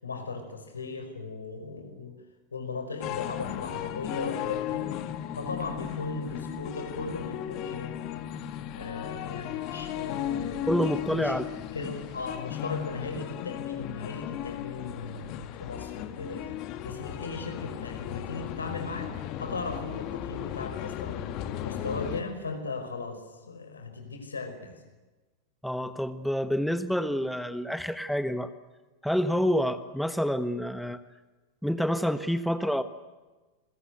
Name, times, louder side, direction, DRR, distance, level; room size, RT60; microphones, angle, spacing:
voice 1, 0.0-2.1 2.5-4.9 5.3-8.0 8.7-11.4 11.7-19.1 19.4-21.3 21.6-24.7, left 4 dB, 75° left, 7 dB, 5.3 m, -37 dB
sound 1, 3.0-22.2, left 11 dB, 40° left, 2.1 m, -36 dB
voice 2, 10.7-11.5 25.6-28.5 29.0-31.0 31.6-32.8, equal, ahead, 11 dB, 1.3 m, -28 dB
29.5 x 22.0 x 8.1 m, 1.2 s
figure-of-eight pair, 90°, 0 cm